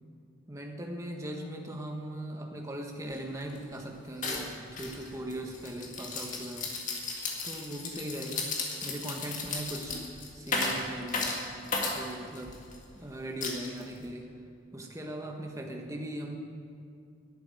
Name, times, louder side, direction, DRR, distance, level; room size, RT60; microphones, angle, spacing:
voice 1, 0.5-6.7 7.4-8.5 8.8-10.0 10.3-11.5 11.9-12.6 12.9-14.3 14.7-16.4, right 1 dB, 15° right, 2 dB, 1.3 m, -39 dB
sound 1, 3.1-3.2 3.5-3.8 4.2-12.8 13.4-14.1, left 3 dB, 35° left, 1.9 m, -35 dB
11.5 x 8.6 x 8.9 m, 2.4 s
head